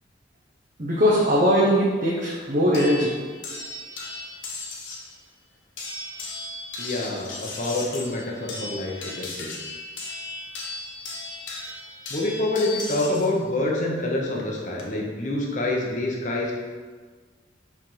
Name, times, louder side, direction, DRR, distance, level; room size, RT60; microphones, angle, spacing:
voice 1, 0.8-3.1, equal, 45° right, -6 dB, 0.9 m, -20 dB
sound 1, 2.7-5.1 5.8-13.3 14.4-14.8, left 2 dB, 90° left, 1.0 m, -36 dB
voice 2, 6.8-9.5 12.1-16.5, left 2 dB, 40° left, -2 dB, 0.8 m, -27 dB
5.2 x 3.4 x 5.6 m, 1.5 s
head